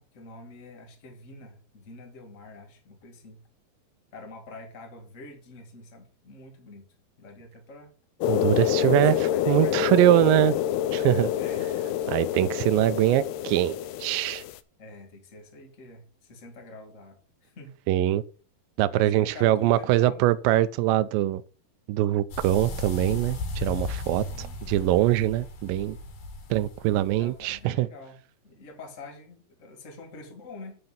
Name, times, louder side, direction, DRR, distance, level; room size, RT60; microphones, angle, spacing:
voice 1, 0.0-3.4 4.1-6.8 7.2-7.9 8.9-10.4 11.3-11.8 14.8-17.2 17.4-17.7 18.9-20.3 24.1-24.9 27.2-28.2 28.4-30.8, left 2 dB, 30° left, 1.4 m, -46 dB
sound 1, 8.2-14.6, left 11 dB, 85° left, 2.6 m, -27 dB
voice 2, 8.3-9.2 9.5-10.6 10.9-11.3 12.1-14.4 17.9-18.2 18.8-21.4 21.9-26.0 26.5-27.9, right 14 dB, 85° right, 2.0 m, -23 dB
sound 2, 22.3-27.7, left 2 dB, 60° left, 2.8 m, -36 dB
9.6 x 3.9 x 7.2 m
omnidirectional pair, 4.5 m